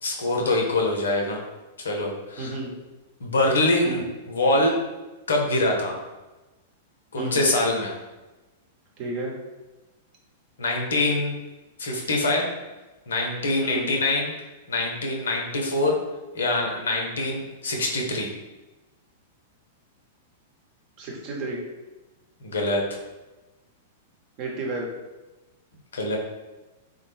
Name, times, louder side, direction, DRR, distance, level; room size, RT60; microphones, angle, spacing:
voice 1, 0.0-1.4 1.8-2.5 3.2-4.0 4.3-4.7 5.3-5.9 7.1-7.9 10.6-11.4 11.8-12.5 13.1-14.3 14.7-16.0 16.3-18.3 22.4-22.8 25.9-26.2, left 2 dB, 70° left, 1 dB, 0.6 m, -24 dB
voice 2, 2.4-2.7 3.8-4.0 7.2-7.5 9.0-9.3 13.6-13.9 21.0-21.6 24.4-24.9, right 2 dB, 40° right, -1 dB, 0.8 m, -31 dB
3.7 x 2.0 x 3.3 m, 1.1 s
figure-of-eight pair, 100°, 0 cm